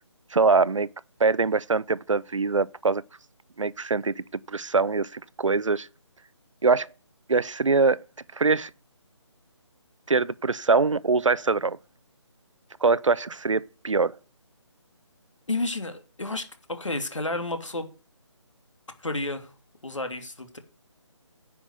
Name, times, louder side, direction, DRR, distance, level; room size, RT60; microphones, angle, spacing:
voice 1, 0.3-0.9 1.2-3.0 3.6-5.9 6.6-6.9 7.3-8.0 8.3-8.7 10.1-11.8 12.8-14.2, right 4 dB, 85° right, 0.7 m, -23 dB
voice 2, 15.5-17.9 19.0-19.5 19.8-20.6, left 2 dB, 85° left, 2.7 m, -31 dB
10.5 x 6.0 x 8.2 m
figure-of-eight pair, 155°, 16 cm